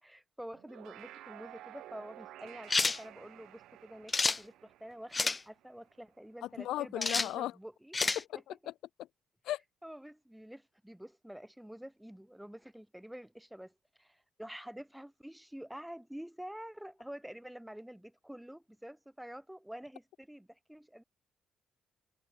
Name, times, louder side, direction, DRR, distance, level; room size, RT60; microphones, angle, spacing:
voice 1, 0.0-7.9 9.8-21.0, equal, 5° right, 6.7 m, -48 dB
sound 1, 0.5-6.1, right 14 dB, 85° right, 6.5 m, -53 dB
sound 2, 2.7-3.0 4.1-4.4 5.1-5.4 7.0-7.3 7.9-8.2, left 3 dB, 25° left, 0.4 m, -29 dB
voice 2, 6.4-7.5 8.2-8.7 9.4-9.6, left 14 dB, 85° left, 0.4 m, -36 dB
cardioid pair, 90°, 0 cm